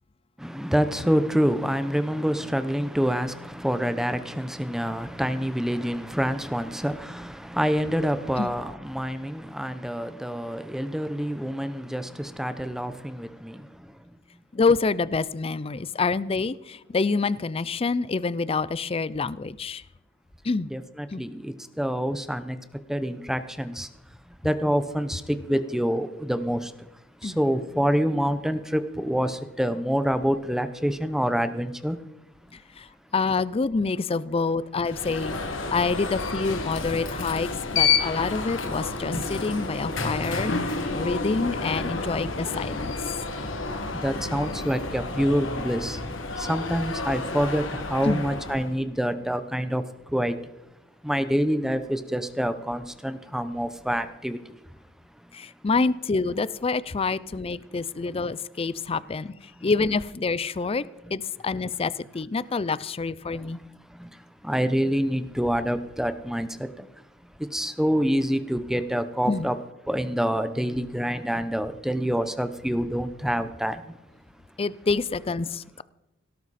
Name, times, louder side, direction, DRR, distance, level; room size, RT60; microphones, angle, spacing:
voice 1, 0.4-13.6 20.7-22.6 22.9-23.9 24.4-26.7 27.2-32.0 44.0-46.0 46.4-49.8 50.1-50.3 51.0-54.4 64.0-64.1 64.4-66.5 67.5-69.6 69.9-73.8, equal, ahead, 0.8 m, -26 dB
voice 2, 14.5-19.8 20.4-20.7 21.1-21.2 27.2-27.4 32.8-35.4 35.7-43.0 48.0-48.3 55.3-59.3 59.6-60.8 61.1-63.6 69.3-69.5 74.6-75.8, left 4 dB, 30° left, 0.4 m, -27 dB
Alarm, 34.8-48.8, left 4 dB, 90° left, 2.0 m, -30 dB
17.5 x 12.0 x 4.2 m
head